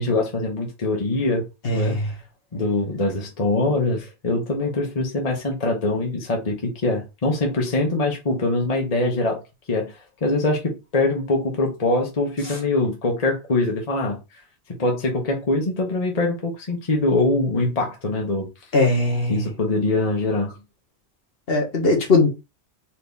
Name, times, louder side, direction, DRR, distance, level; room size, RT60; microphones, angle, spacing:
voice 1, 0.0-1.5 1.7-2.1 2.5-9.4 9.7-14.2 14.8-18.5 19.3-20.5, left 2 dB, 35° left, 1.1 m, -23 dB
voice 2, 1.6-2.0 18.7-19.4 21.5-22.3, left 2 dB, 60° left, 1.4 m, -19 dB
4.4 x 2.8 x 3.4 m
omnidirectional pair, 1.1 m